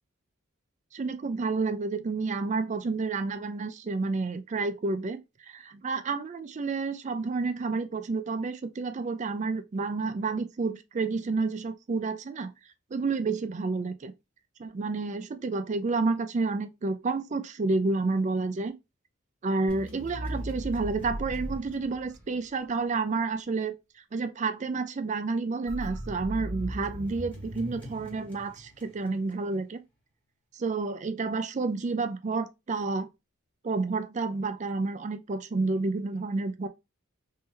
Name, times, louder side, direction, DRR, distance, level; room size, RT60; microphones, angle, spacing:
voice 1, 0.9-12.5 12.9-14.1 14.6-18.7 19.4-23.7 24.1-29.8 30.5-33.1 33.6-36.7, right 3 dB, 35° right, 0.4 m, -30 dB
sound 1, 19.7-22.7 25.7-29.1, right 1 dB, 5° left, 1.0 m, -38 dB
3.7 x 3.2 x 2.7 m
head